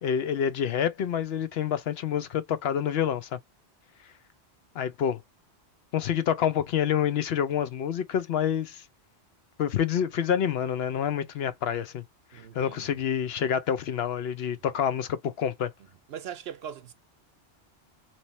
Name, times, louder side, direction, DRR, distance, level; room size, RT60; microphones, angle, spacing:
voice 1, 0.0-3.4 4.8-5.2 5.9-8.8 9.6-12.0 12.5-15.7, left 8 dB, 65° left, 0.8 m, -27 dB
voice 2, 12.3-13.0 14.5-14.6 16.1-16.9, right 9 dB, 65° right, 0.8 m, -41 dB
3.1 x 2.7 x 4.0 m
omnidirectional pair, 1.2 m